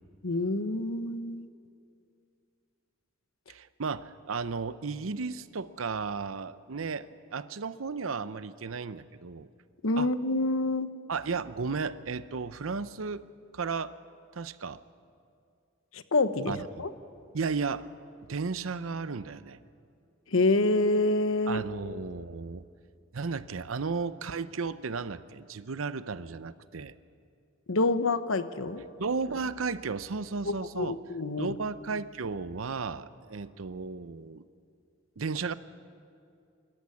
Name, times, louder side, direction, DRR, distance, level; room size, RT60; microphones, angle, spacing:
voice 1, 0.2-1.5 9.8-10.9 15.9-16.9 20.3-21.6 27.7-28.8 30.4-31.5, left 2 dB, 90° left, 11 dB, 1.0 m, -27 dB
voice 2, 3.5-9.5 10.0-10.1 11.1-13.2 13.5-13.9 14.3-14.8 16.5-16.6 17.3-17.9 18.3-19.6 21.5-22.6 23.1-26.9 29.0-31.0 31.4-34.4 35.2-35.5, right 4 dB, 90° right, 14 dB, 0.7 m, -34 dB
25.5 x 14.5 x 9.7 m, 2.4 s
head